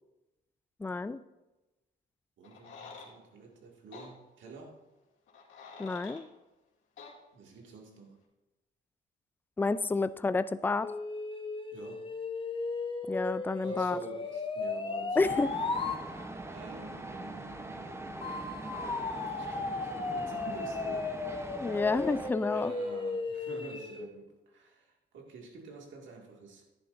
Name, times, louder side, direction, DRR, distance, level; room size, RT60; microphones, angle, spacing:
voice 1, 0.8-1.2 5.8-6.3 9.6-10.9 13.1-14.0 15.2-15.5 21.6-22.7, left 3 dB, 10° left, 14 dB, 0.3 m, -29 dB
sound 1, 2.4-3.1 3.9-4.1 5.3-6.2 7.0-7.1, left 5 dB, 75° left, 2.4 m, -48 dB
voice 2, 2.4-4.8 7.3-8.2 11.7-12.1 13.6-15.3 15.7-21.2 22.4-26.6, right 4 dB, 75° right, 1 dB, 2.1 m, -49 dB
sound 2, 10.8-16.0 18.2-24.1, left 3 dB, 25° left, 0.9 m, -35 dB
sound 3, 15.2-22.3, right 2 dB, 15° right, 0.8 m, -42 dB
10.5 x 10.5 x 2.6 m, 1.1 s
cardioid pair, 90°, 20 cm